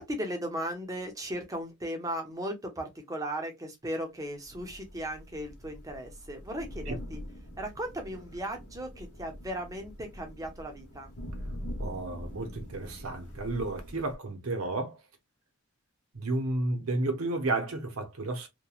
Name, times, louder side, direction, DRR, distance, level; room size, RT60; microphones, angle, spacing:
voice 1, 0.0-7.2 7.6-11.1, equal, 15° right, 0.6 m, -37 dB
Thunder / Rain, 4.4-14.2, equal, 80° left, 1.0 m, -43 dB
voice 2, 11.8-15.0 16.1-18.5, right 2 dB, 70° right, 0.7 m, -32 dB
2.9 x 2.2 x 2.3 m
head